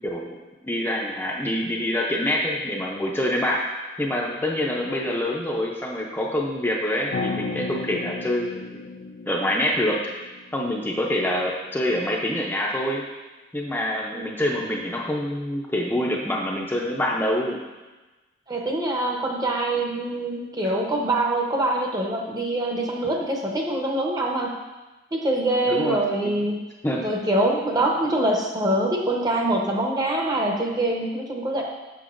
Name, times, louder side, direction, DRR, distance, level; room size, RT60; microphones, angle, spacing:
voice 1, 0.0-3.7 4.0-8.8 9.3-10.1 10.5-13.0 13.5-17.6 25.7-26.0 26.2-26.4 26.8-27.1, left 1 dB, 10° left, -3 dB, 0.5 m, -26 dB
sound 1, 7.1-11.3, left 4 dB, 65° left, 0.5 m, -34 dB
voice 2, 18.5-24.5 25.1-26.6 27.0-31.6, right 1 dB, 20° right, 0 dB, 0.7 m, -24 dB
6.9 x 6.3 x 2.5 m, 1.2 s
head